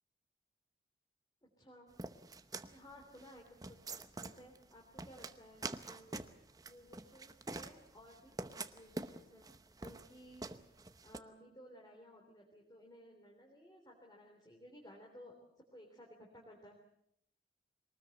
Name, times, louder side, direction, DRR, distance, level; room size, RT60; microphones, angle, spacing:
voice 1, 1.4-1.9 2.4-3.8 4.2-9.5 9.8-10.5 11.0-15.4 15.7-16.8, equal, 25° left, -1 dB, 3.5 m, -57 dB
sound 1, 2.0-11.2, right 3 dB, 20° right, 0.9 m, -46 dB
23.0 x 19.5 x 7.9 m, 0.76 s
head